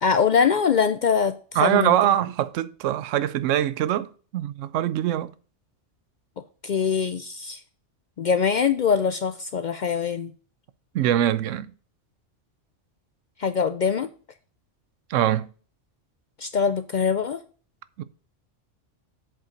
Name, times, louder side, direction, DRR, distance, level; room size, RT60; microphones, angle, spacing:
voice 1, 0.0-1.3 1.6-1.9 6.6-7.6 8.2-10.3 13.4-14.1 16.4-17.4, left 6 dB, 60° left, 0.4 m, -23 dB
voice 2, 1.6-5.3 10.9-11.7 15.1-15.5 18.0-18.1, right 11 dB, 85° right, 1.0 m, -23 dB
7.4 x 5.4 x 5.1 m
omnidirectional pair, 1.3 m